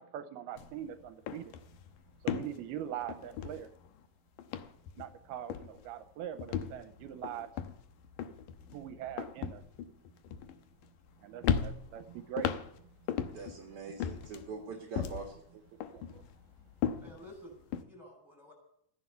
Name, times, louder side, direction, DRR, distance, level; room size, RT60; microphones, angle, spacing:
voice 1, 0.0-1.5 2.2-3.7 5.0-7.5 8.7-9.6 11.2-12.5 13.3-13.4 15.9-16.2, right 10 dB, 80° right, 10 dB, 2.7 m, -42 dB
sound 1, 0.6-0.8 1.1-4.1 4.4-5.2 5.5-5.9 6.4-11.1 11.4-13.6 14.0-15.4 15.8-17.8, left 8 dB, 70° left, 2.2 m, -37 dB
voice 2, 13.3-15.4, right 4 dB, 45° right, 2 dB, 2.0 m, -43 dB
voice 3, 17.0-18.5, equal, 5° right, 3 dB, 6.2 m, -52 dB
15.5 x 10.5 x 8.0 m, 0.71 s
omnidirectional pair, 4.6 m